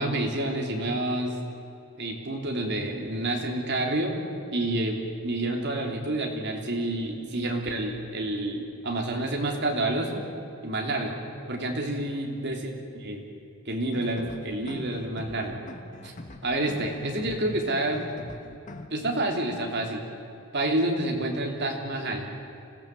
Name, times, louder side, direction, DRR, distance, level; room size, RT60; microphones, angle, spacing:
voice 1, 0.0-1.4 2.0-4.2 4.5-5.0 5.2-10.2 10.6-11.2 11.5-13.2 13.6-15.6 16.0-16.1 16.4-18.1 18.9-20.0 20.5-22.3, right 1 dB, 50° right, 1 dB, 3.3 m, -28 dB
sound 1, 13.8-18.9, left 2 dB, 35° left, 1.4 m, -42 dB
25.5 x 17.0 x 7.8 m, 2.7 s
head